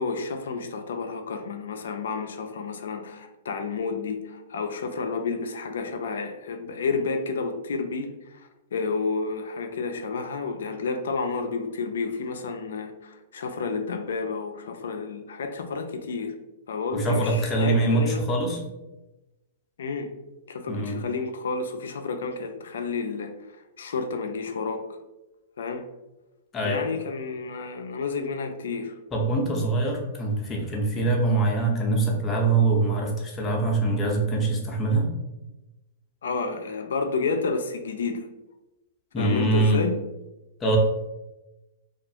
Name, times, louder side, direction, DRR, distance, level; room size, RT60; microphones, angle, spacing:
voice 1, 0.0-8.1 8.7-16.3 16.7-18.2 19.8-20.1 20.5-23.3 23.8-24.8 25.6-25.8 26.6-28.9 36.2-38.3 39.2-40.0, left 4 dB, 80° left, 6 dB, 0.4 m, -30 dB
voice 2, 16.9-18.6 20.7-21.0 26.5-26.8 29.1-35.1 39.1-39.9 40.6-40.8, right 2 dB, 20° left, -1 dB, 0.6 m, -24 dB
2.4 x 2.3 x 2.7 m, 1.0 s
hypercardioid pair, 140°, 0 cm